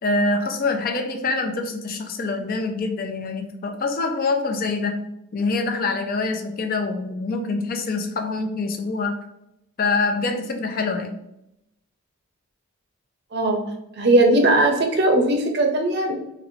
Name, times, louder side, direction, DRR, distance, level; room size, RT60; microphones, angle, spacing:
voice 1, 0.0-9.2 9.8-11.1, left 3 dB, 45° left, 5 dB, 0.4 m, -25 dB
voice 2, 14.0-16.1, right 1 dB, 50° right, 3 dB, 0.5 m, -18 dB
4.2 x 2.1 x 2.6 m, 0.83 s
head